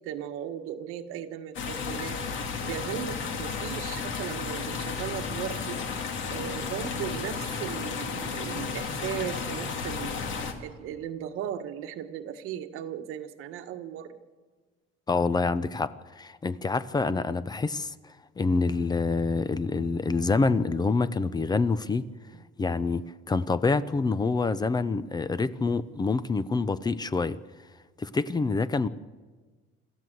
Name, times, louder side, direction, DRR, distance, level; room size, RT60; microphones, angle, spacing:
voice 1, 0.0-2.2 2.6-5.8 6.3-10.2 10.6-14.2 22.3-22.4, right 9 dB, 85° right, 1.4 m, -37 dB
sound 1, 1.5-10.5, left 5 dB, 65° left, 2.4 m, -33 dB
voice 2, 15.1-22.0 22.6-27.4 28.0-28.9, left 4 dB, 20° left, 0.6 m, -27 dB
26.0 x 14.0 x 7.8 m
cardioid pair, 135°, 21 cm